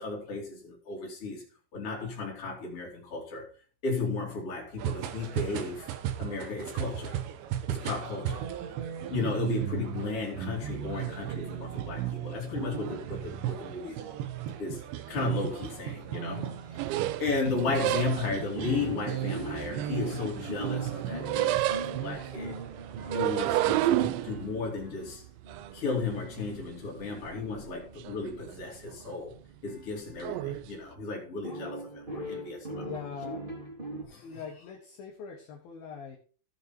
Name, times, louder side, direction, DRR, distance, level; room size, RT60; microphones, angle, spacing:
voice 1, 0.0-1.4 1.7-3.5 3.8-5.9 6.2-7.1 7.7-8.4 9.1-14.0 14.6-16.6 16.9-22.6 23.1-25.2 25.7-29.3 29.6-32.9 34.0-34.4, left 4 dB, 30° left, 3.3 m, -34 dB
sound 1, 4.8-23.9, right 11 dB, 75° right, 2.8 m, -36 dB
voice 2, 8.2-8.6 32.8-33.5 34.2-36.2, left 6 dB, 65° left, 2.5 m, -42 dB
sound 2, 16.8-18.5 19.2-20.5 20.8-22.3 23.0-26.7 27.0-27.7 28.0-28.6 28.9-29.1 30.2-30.6, right 14 dB, 90° right, 2.6 m, -30 dB
sound 3, 18.5-30.7 31.4-34.0, right 1 dB, 15° right, 1.9 m, -42 dB
15.5 x 5.8 x 4.5 m
omnidirectional pair, 5.9 m